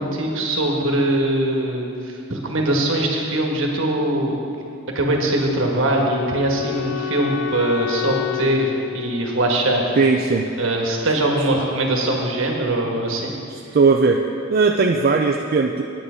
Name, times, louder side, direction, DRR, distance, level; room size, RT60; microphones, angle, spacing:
voice 1, 0.0-4.4 4.9-9.9 10.6-13.3, right 1 dB, 70° right, 0 dB, 1.4 m, -22 dB
Wind instrument woodwind instrument, 5.5-10.5, left 11 dB, 60° left, 0.4 m, -30 dB
voice 2, 10.0-10.5 13.5-14.2 14.5-15.8, right 4 dB, 45° right, 2 dB, 0.4 m, -18 dB
9.5 x 8.5 x 5.0 m, 2.5 s
head